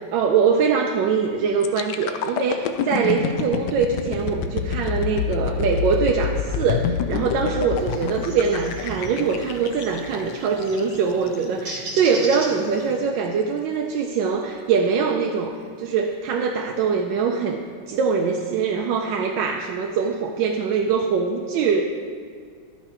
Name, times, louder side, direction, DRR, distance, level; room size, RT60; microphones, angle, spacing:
voice 1, 0.0-21.8, right 5 dB, 75° right, 2 dB, 1.2 m, -23 dB
sound 1, 1.6-11.4 11.9-12.1, left 7 dB, 75° left, 1.0 m, -27 dB
sound 2, 7.8-13.0, right 1 dB, 50° right, 1.6 m, -37 dB
11.5 x 5.8 x 4.4 m, 2.2 s
omnidirectional pair, 2.2 m